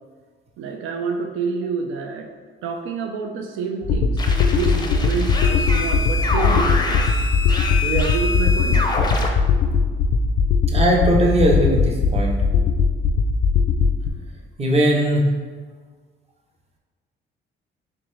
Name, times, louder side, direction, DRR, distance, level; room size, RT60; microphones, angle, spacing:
voice 1, 0.6-2.3 2.6-7.0 7.8-8.8, right 5 dB, 90° right, 3 dB, 0.4 m, -28 dB
sound 1, 3.8-14.1, left 5 dB, 70° left, 0.4 m, -20 dB
sound 2, 4.2-9.3, left 3 dB, 20° left, 0.5 m, -26 dB
voice 2, 10.7-12.4 14.6-15.3, right 1 dB, 30° right, -1 dB, 0.8 m, -19 dB
3.8 x 3.3 x 3.2 m, 1.5 s
cardioid pair, 90°, 20 cm